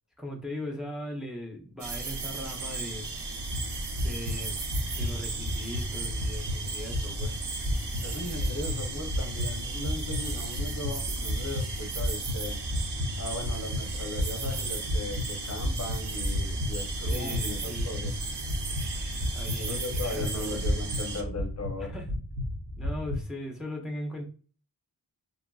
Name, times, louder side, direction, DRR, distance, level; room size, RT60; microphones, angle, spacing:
voice 1, 0.2-3.1 3.9-7.4 17.0-17.9 19.3-20.6 21.8-22.1 22.8-24.2, left 1 dB, ahead, 1 dB, 0.5 m, -39 dB
sound 1, 1.8-21.2, right 4 dB, 75° right, 0.6 m, -36 dB
sound 2, 3.3-23.2, left 1 dB, 55° right, 0.9 m, -33 dB
voice 2, 8.0-12.6 13.2-18.2 19.6-21.9, left 2 dB, 40° left, 3 dB, 0.6 m, -37 dB
2.9 x 2.4 x 2.3 m, 0.39 s
wide cardioid pair, 95°, 40 cm